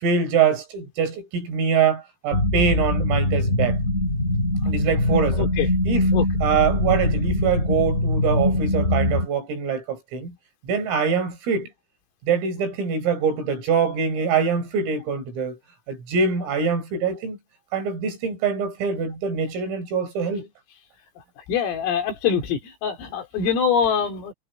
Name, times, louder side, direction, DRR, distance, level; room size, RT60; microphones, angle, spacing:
voice 1, 0.0-3.8 4.7-5.5 5.9-6.1 6.4-10.3 10.6-11.7 12.3-15.6 15.9-17.4 17.7-20.5, right 6 dB, 85° right, 8.1 m, -24 dB
sound 1, 2.3-9.3, left 1 dB, 15° left, 5.5 m, -22 dB
voice 2, 5.3-5.7 6.1-6.3 21.5-24.3, left 7 dB, 85° left, 6.3 m, -24 dB
omnidirectional pair, 5.7 m